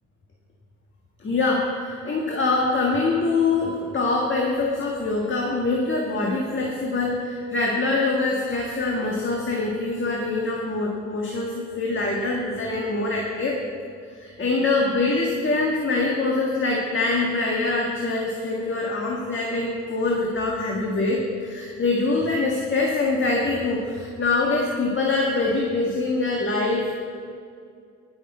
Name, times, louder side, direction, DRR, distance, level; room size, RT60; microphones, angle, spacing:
voice 1, 1.2-13.6 14.2-26.9, left 3 dB, 40° left, -2 dB, 1.6 m, -24 dB
18.5 x 6.6 x 4.4 m, 2.3 s
cardioid pair, 90°, 30 cm